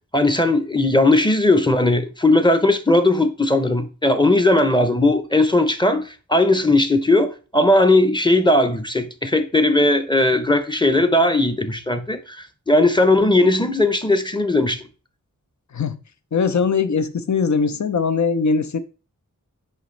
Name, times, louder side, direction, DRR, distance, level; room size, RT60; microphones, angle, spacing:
voice 1, 0.1-14.9, left 2 dB, 15° left, 0.7 m, -18 dB
voice 2, 16.3-18.8, left 5 dB, 55° left, 0.6 m, -21 dB
6.6 x 5.1 x 3.2 m
wide cardioid pair, 75°, 34 cm